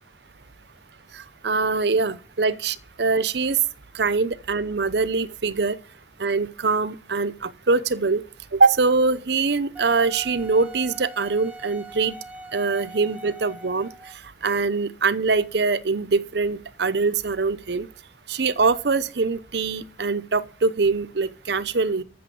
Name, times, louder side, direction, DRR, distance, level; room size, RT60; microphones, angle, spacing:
voice 1, 1.4-3.6 3.9-5.8 6.2-8.2 8.5-12.2 12.5-13.9 14.4-17.9 18.3-22.0, right 4 dB, 65° right, 0.8 m, -23 dB
Wind instrument woodwind instrument, 9.7-14.3, right 2 dB, 10° right, 1.1 m, -42 dB
14.0 x 6.8 x 7.0 m
head